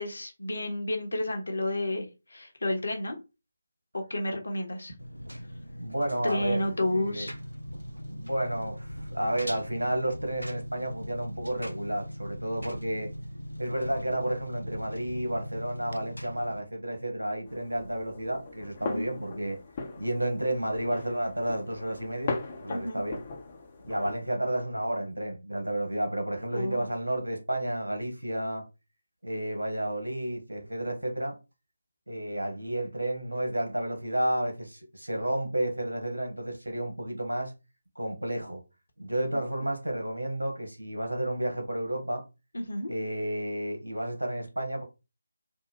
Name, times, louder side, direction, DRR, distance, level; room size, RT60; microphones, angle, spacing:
voice 1, 0.0-3.2 3.9-4.9 6.2-7.3 18.8-19.0 22.7-23.0 26.5-26.9 39.3-39.6 42.5-42.9, left 1 dB, 60° left, 1.2 m, -31 dB
Engine, 5.0-16.6, equal, 90° left, 0.5 m, -40 dB
voice 2, 5.7-6.6 6.9-7.3 8.1-13.1 13.6-19.6 20.0-22.3 22.6-23.2 23.8-28.6 29.2-31.3 32.1-37.5 37.9-38.6 39.0-42.2 42.9-44.8, right 1 dB, 75° right, 1.3 m, -31 dB
sound 1, 17.5-24.2, left 3 dB, 25° left, 0.8 m, -39 dB
3.7 x 2.2 x 4.0 m
figure-of-eight pair, 155°, 0 cm